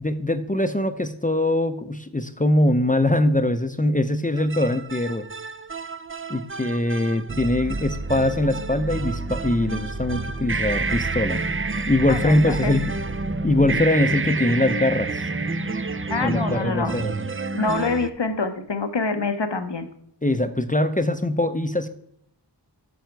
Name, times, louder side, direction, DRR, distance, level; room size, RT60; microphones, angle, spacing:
voice 1, 0.0-5.3 6.3-11.4 11.9-12.9 13.4-15.3 16.2-17.1 20.2-21.9, left 1 dB, 20° left, 10 dB, 0.6 m, -22 dB
sound 1, 4.4-18.1, right 3 dB, 30° right, 0.5 m, -29 dB
voice 2, 12.1-12.7 16.1-16.9 17.5-19.9, left 3 dB, 80° left, 9 dB, 1.1 m, -26 dB
9.0 x 6.3 x 4.6 m, 0.70 s
wide cardioid pair, 40°, 42 cm